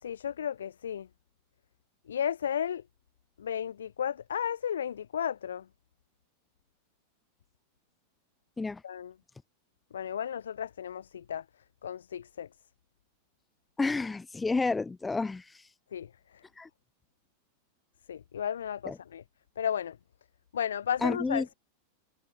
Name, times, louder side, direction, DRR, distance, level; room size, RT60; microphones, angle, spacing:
voice 1, 0.0-1.1 2.1-2.8 3.4-5.7 8.8-9.1 9.9-11.4 11.8-12.5 15.9-16.4 18.1-19.2 19.6-20.0 20.5-21.5, left 8 dB, 65° left, 1.8 m, -34 dB
voice 2, 13.8-15.6 16.6-16.7 18.8-19.0 21.0-21.5, left 3 dB, 10° left, 1.6 m, -30 dB
figure-of-eight pair, 90°, 0 cm